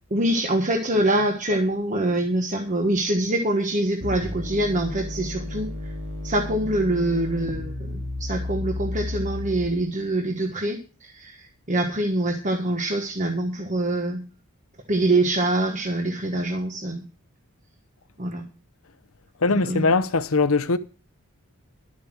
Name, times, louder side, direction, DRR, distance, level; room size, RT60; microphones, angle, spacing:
voice 1, 0.1-5.9 6.2-14.2 14.9-17.0 18.2-18.4 19.5-19.9, right 1 dB, 35° right, 1.3 m, -25 dB
sound 1, 4.0-10.0, left 2 dB, 50° right, 2.9 m, -32 dB
voice 2, 19.4-20.8, left 3 dB, 70° left, 0.8 m, -21 dB
12.0 x 8.1 x 6.2 m
head